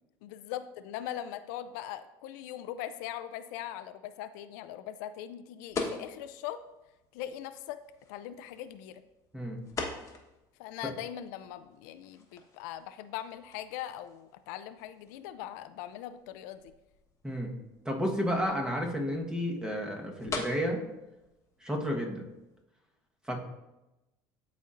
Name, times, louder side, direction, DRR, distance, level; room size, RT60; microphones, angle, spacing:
voice 1, 0.2-6.6 7.1-7.8 8.1-9.0 10.6-16.7, left 11 dB, 90° left, 11 dB, 0.4 m, -40 dB
sound 1, 5.7-22.6, left 4 dB, 30° left, 1.2 m, -45 dB
voice 2, 17.2-17.5 17.8-20.8 21.6-22.2 23.3-23.4, equal, 10° right, 1 dB, 1.3 m, -31 dB
12.5 x 4.2 x 2.5 m, 0.99 s
supercardioid pair, 110°, 10 cm